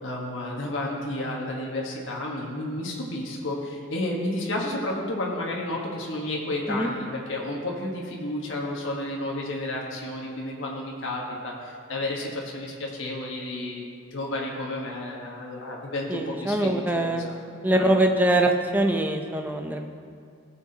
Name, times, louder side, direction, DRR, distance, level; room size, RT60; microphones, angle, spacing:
voice 1, 0.0-17.4 17.7-17.9, left 1 dB, 75° left, -3 dB, 1.4 m, -31 dB
voice 2, 16.1-17.3 17.6-19.9, right 1 dB, 10° right, 3 dB, 0.5 m, -23 dB
17.0 x 7.2 x 2.9 m, 2.2 s
head